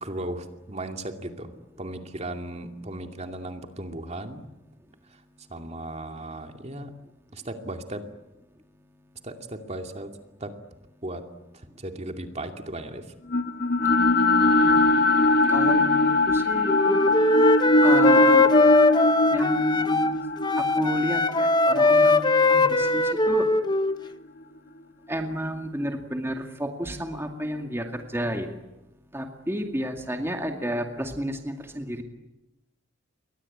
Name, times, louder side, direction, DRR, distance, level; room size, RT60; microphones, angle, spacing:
voice 1, 0.0-1.5 1.8-4.4 5.5-6.9 7.3-8.0 9.2-10.1 10.4-10.5 11.0-11.2 11.5-13.1, right 1 dB, 35° right, 5 dB, 2.5 m, -36 dB
sound 1, 13.3-23.5, left 2 dB, 55° left, 1.6 m, -22 dB
voice 2, 14.6-15.1 15.5-17.0 17.3-17.5 17.8-18.4 19.3-20.2 20.6-23.5 25.1-28.6 29.1-32.0, equal, 15° right, 4 dB, 2.2 m, -31 dB
Wind instrument woodwind instrument, 16.7-20.1 20.4-24.0, left 2 dB, 20° left, 1.2 m, -21 dB
29.5 x 23.0 x 8.6 m, 1.0 s
head